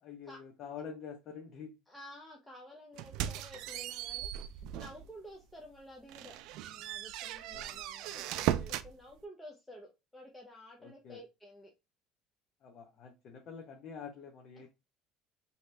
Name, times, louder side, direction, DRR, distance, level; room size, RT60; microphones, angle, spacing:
voice 1, 0.0-1.7 7.5-7.8 10.8-11.2 12.6-14.7, left 6 dB, 45° left, 0.7 m, -47 dB
voice 2, 1.9-6.4 6.7-11.7 14.6-14.7, equal, 5° left, 0.6 m, -52 dB
sound 1, 3.0-5.1 5.5-5.6 6.1-8.9, right 12 dB, 70° right, 0.3 m, -37 dB
3.1 x 2.8 x 3.3 m
cardioid pair, 145°, 0 cm